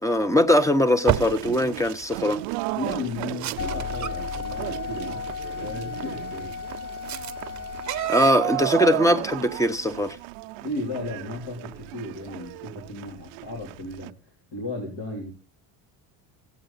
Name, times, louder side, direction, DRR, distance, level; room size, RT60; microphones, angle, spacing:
voice 1, 0.0-2.4 8.1-10.2, equal, 5° left, 0.8 m, -21 dB
sound 1, 1.1-8.3, right 11 dB, 35° right, 0.8 m, -32 dB
sound 2, 1.1-14.1, right 21 dB, 70° right, 0.6 m, -35 dB
voice 2, 2.8-5.2 5.6-6.5 10.6-14.1 14.5-15.3, left 2 dB, 60° left, 3.4 m, -34 dB
sound 3, 3.6-8.1, left 6 dB, 35° left, 0.5 m, -34 dB
15.5 x 8.1 x 4.0 m
supercardioid pair, 100°, 48 cm